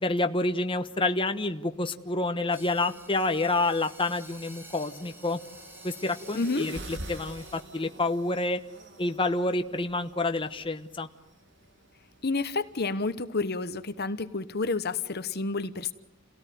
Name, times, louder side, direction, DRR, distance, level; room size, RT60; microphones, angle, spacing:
voice 1, 0.0-5.4 5.8-8.6 9.0-11.1, left 2 dB, 25° left, 1.1 m, -28 dB
sound 1, 2.5-7.6, right 1 dB, 10° right, 2.4 m, -50 dB
sound 2, 2.9-12.9, right 1 dB, 60° right, 3.2 m, -48 dB
voice 2, 6.3-6.7 12.2-15.9, left 3 dB, 50° left, 1.1 m, -30 dB
29.5 x 17.5 x 9.3 m
head